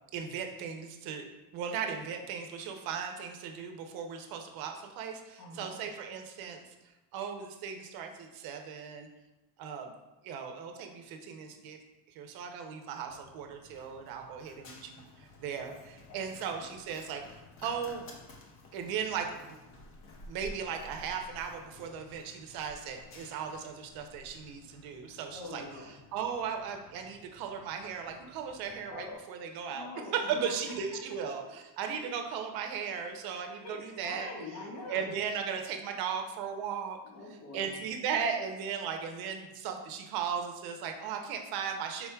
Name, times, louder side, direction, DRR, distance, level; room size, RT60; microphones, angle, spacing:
voice 1, 0.1-1.3 1.5-6.7 7.1-9.1 9.6-9.9 10.2-11.8 12.1-17.2 17.6-18.1 18.7-19.6 20.3-34.3 34.9-37.0 37.5-42.1, right 7 dB, 50° right, 4 dB, 0.6 m, -37 dB
voice 2, 5.4-5.7 16.1-16.2 25.3-25.9 28.9-29.2 29.7-30.5 33.6-35.2 37.1-37.7, left 2 dB, 85° left, -2 dB, 1.5 m, -44 dB
Run, 13.1-29.1, left 2 dB, 30° left, 0.4 m, -53 dB
5.8 x 4.1 x 2.2 m, 1.0 s
cardioid pair, 155°, 49 cm